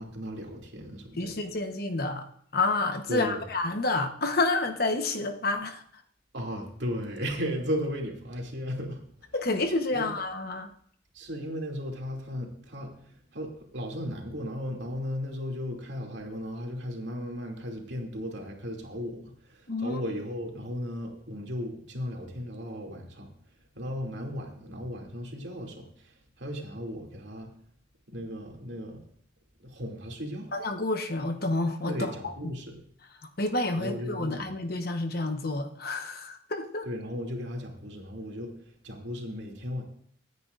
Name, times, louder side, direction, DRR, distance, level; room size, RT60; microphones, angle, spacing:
voice 1, 0.0-1.3 3.1-3.4 6.3-9.0 9.9-10.1 11.1-23.3 23.7-27.5 28.1-29.0 29.6-30.5 31.9-32.8 33.8-34.3 36.8-38.6 38.8-39.8, equal, 65° right, 2.7 m, -36 dB
voice 2, 1.2-2.2 2.5-5.8 9.3-10.7 19.7-20.0 30.5-32.3 33.2-36.9, left 2 dB, 50° left, 1.1 m, -29 dB
25.0 x 9.5 x 2.6 m
head